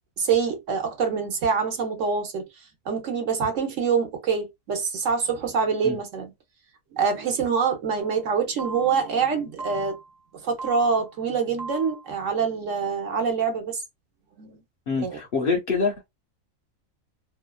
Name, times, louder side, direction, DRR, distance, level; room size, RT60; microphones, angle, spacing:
voice 1, 0.2-2.4 2.9-6.3 6.9-10.0 10.3-13.8 14.4-14.6 15.0-15.2, right 5 dB, 65° right, 1.2 m, -25 dB
sound 1, 8.0-8.2 8.6-9.2 9.6-10.2 10.6-11.1 11.6-12.2, right 3 dB, 30° right, 0.4 m, -38 dB
voice 2, 14.9-16.1, left 4 dB, 55° left, 0.7 m, -25 dB
2.8 x 2.3 x 2.2 m
omnidirectional pair, 1.4 m